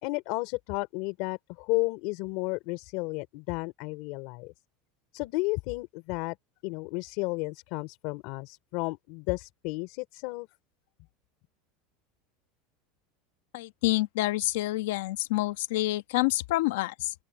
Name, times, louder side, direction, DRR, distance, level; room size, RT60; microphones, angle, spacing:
voice 1, 0.0-4.5 5.1-6.4 6.6-10.5, left 24 dB, 50° left, 4.0 m, -32 dB
voice 2, 13.5-17.1, left 18 dB, 75° left, 1.2 m, -28 dB
open air
supercardioid pair, 170°, 0 cm